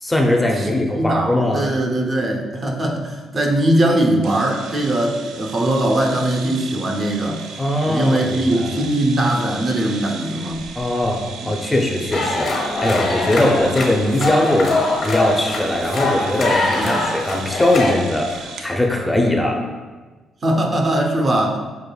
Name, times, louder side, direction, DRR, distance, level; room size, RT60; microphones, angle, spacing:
voice 1, 0.0-1.7 7.6-8.8 10.8-14.7 15.0-19.6, left 1 dB, 10° left, 1 dB, 0.5 m, -20 dB
voice 2, 0.6-7.4 7.8-10.6 11.4-11.5 16.8-17.0 20.4-21.6, right 1 dB, 40° right, 1 dB, 0.6 m, -20 dB
sound 1, 4.2-18.7, right 5 dB, 90° right, 0.3 m, -36 dB
sound 2, 12.1-17.9, left 2 dB, 60° left, 0.9 m, -22 dB
6.3 x 2.5 x 2.3 m, 1.3 s
cardioid pair, 90°, 0 cm